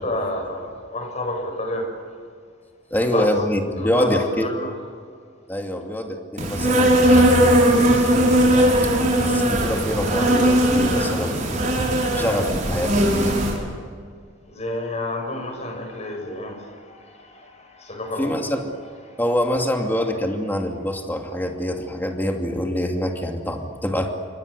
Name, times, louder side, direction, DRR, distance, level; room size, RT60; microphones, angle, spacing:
voice 1, 0.0-1.9 3.1-3.4 3.8-4.7 7.0-7.2 14.5-16.7 17.2-17.4 17.8-18.4, left 1 dB, 35° left, 3 dB, 6.6 m, -29 dB
voice 2, 2.9-4.5 5.5-7.2 7.4-8.8 9.2-11.7 12.1-13.3 18.2-18.7 19.2-24.1, equal, 10° left, 2 dB, 2.5 m, -25 dB
Insect, 6.4-13.6, right 1 dB, 40° right, 5.9 m, -18 dB
29.0 x 24.5 x 6.7 m, 2.1 s
head